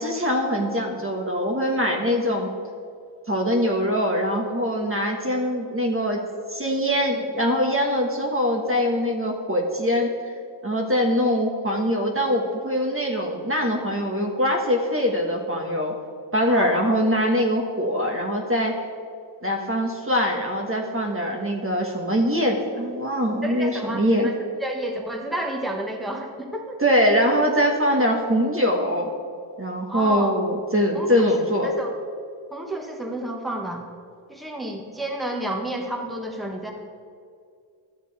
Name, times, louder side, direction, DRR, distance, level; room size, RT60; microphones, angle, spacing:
voice 1, 0.0-2.5 3.3-6.2 6.5-10.1 10.6-15.9 16.3-18.8 19.4-24.3 26.8-29.1 29.6-31.7, equal, 25° right, 1 dB, 1.3 m, -23 dB
voice 2, 16.5-16.9 23.4-24.3 24.6-26.8 29.9-30.3 30.9-31.3 31.6-31.9 32.5-33.8 34.3-36.7, right 1 dB, ahead, 0 dB, 1.3 m, -30 dB
12.5 x 7.3 x 4.1 m, 2.3 s
cardioid pair, 65°, 47 cm